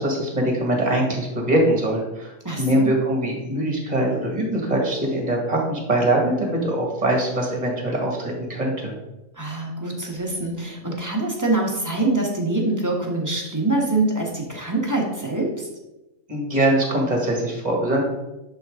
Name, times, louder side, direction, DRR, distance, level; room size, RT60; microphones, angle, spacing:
voice 1, 0.0-8.9 16.3-18.0, right 1 dB, 30° right, 0 dB, 2.0 m, -22 dB
voice 2, 2.4-2.9 9.4-15.7, right 2 dB, 15° right, -1 dB, 1.4 m, -24 dB
10.5 x 4.7 x 3.7 m, 1.0 s
omnidirectional pair, 1.4 m